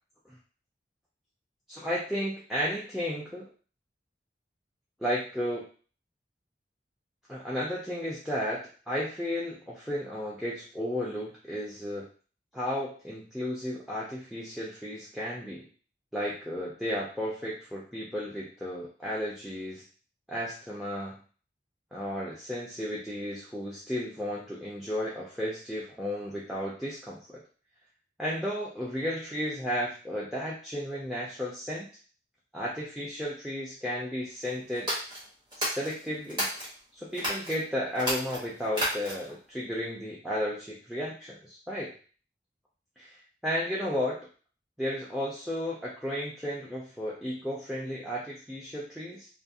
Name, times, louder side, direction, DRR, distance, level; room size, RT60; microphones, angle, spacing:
voice 1, 1.7-3.5 5.0-5.7 7.3-12.1 12.5-15.6 16.1-19.8 20.3-21.2 21.9-27.4 28.2-31.9 32.5-34.9 35.6-36.5 36.9-41.9 43.0-44.2 44.8-49.3, equal, ahead, -6 dB, 0.4 m, -33 dB
sound 1, 34.7-36.7 37.1-37.6 37.9-39.4, equal, 25° right, 1.0 m, -32 dB
2.5 x 2.4 x 2.7 m, 0.40 s
head